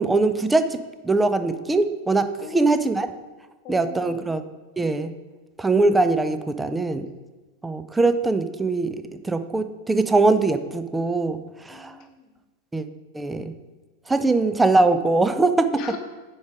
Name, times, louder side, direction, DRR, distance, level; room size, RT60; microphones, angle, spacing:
voice 1, 0.0-3.1 3.7-4.4 4.8-5.1 5.6-7.1 7.6-11.9 12.7-12.9 13.1-13.5 14.1-15.7, right 3 dB, 10° right, 10 dB, 0.5 m, -22 dB
voice 2, 2.4-3.0 3.6-4.3 11.7-12.3 15.7-16.0, left 7 dB, 40° left, 5 dB, 1.2 m, -39 dB
9.5 x 4.6 x 5.0 m, 1.2 s
figure-of-eight pair, 90°, 0 cm